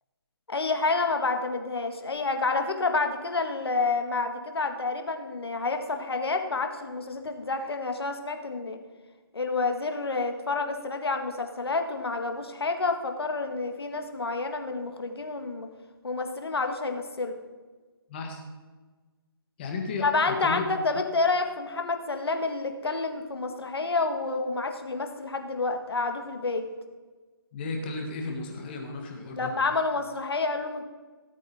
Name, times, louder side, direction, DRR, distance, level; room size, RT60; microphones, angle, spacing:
voice 1, 0.5-8.8 9.3-15.7 16.0-17.4 20.0-26.7 29.4-30.8, left 3 dB, 80° left, 6 dB, 1.8 m, -29 dB
voice 2, 19.6-20.6 27.5-29.5, left 3 dB, 25° left, 2 dB, 1.6 m, -34 dB
17.5 x 8.3 x 4.2 m, 1.3 s
hypercardioid pair, 160°, 13 cm